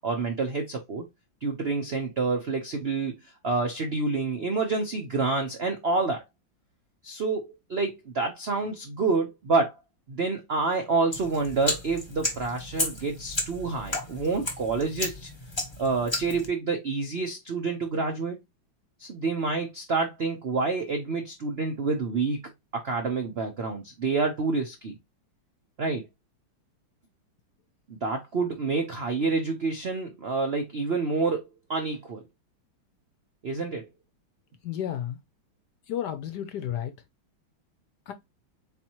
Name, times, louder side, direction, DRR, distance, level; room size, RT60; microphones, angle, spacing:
voice 1, 0.0-1.1 1.4-6.2 7.0-9.8 10.1-15.3 15.8-18.4 19.0-22.4 22.7-24.9 25.8-26.1 27.9-32.2 33.4-33.9, right 4 dB, 85° right, 0.5 m, -28 dB
sound 1, 11.1-16.5, left 2 dB, 20° left, 0.7 m, -33 dB
voice 2, 34.6-35.2 35.9-36.9 38.1-38.2, left 10 dB, 70° left, 1.0 m, -32 dB
4.3 x 3.9 x 2.9 m
omnidirectional pair, 2.2 m